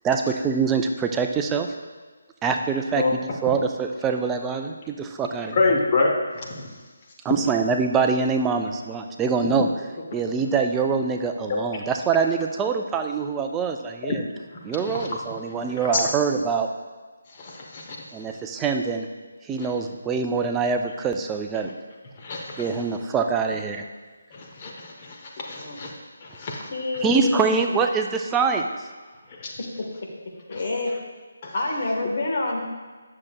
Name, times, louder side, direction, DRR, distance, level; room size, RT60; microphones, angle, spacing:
voice 1, 0.0-1.7 2.4-5.6 7.2-9.7 10.1-14.2 14.6-16.7 18.1-19.1 19.4-21.7 22.6-23.8 27.0-28.9, right 5 dB, 10° right, 4 dB, 0.4 m, -24 dB
voice 2, 5.5-6.7 11.5-11.6 14.9-15.1 15.9-16.0 17.4-18.0 19.6-19.7 22.2-22.6 24.3-25.9 26.2-26.7 29.4-29.5 30.5-30.6 31.4-31.5, left 3 dB, 30° left, -1 dB, 0.8 m, -26 dB
voice 3, 26.7-27.4 29.6-29.7 30.5-30.9 31.5-32.6, left 2 dB, 45° left, 0 dB, 1.3 m, -27 dB
9.5 x 6.4 x 2.2 m, 1.4 s
figure-of-eight pair, 150°, 0 cm